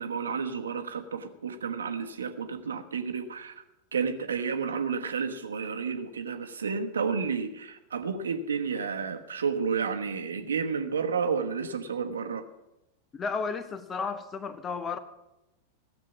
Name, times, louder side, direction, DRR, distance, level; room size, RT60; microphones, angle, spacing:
voice 1, 0.0-3.5 3.9-12.4, right 5 dB, 70° right, 7 dB, 1.2 m, -31 dB
voice 2, 13.1-15.0, left 5 dB, 20° left, 13 dB, 1.0 m, -33 dB
16.0 x 7.5 x 7.2 m, 0.91 s
figure-of-eight pair, 90°, 0 cm